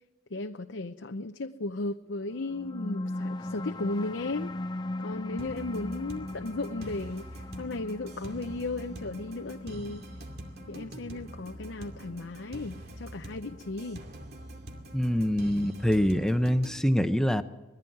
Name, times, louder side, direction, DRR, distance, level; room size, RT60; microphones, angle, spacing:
voice 1, 0.3-4.5 5.0-10.1 10.7-14.0, left 2 dB, 80° left, 7 dB, 0.7 m, -35 dB
sound 1, 2.4-13.3, left 1 dB, 25° left, 0.6 m, -39 dB
sound 2, 5.4-16.8, right 1 dB, 60° right, 2.4 m, -45 dB
voice 2, 14.9-17.4, equal, 5° left, 9 dB, 1.0 m, -25 dB
21.5 x 15.5 x 9.4 m, 1.1 s
head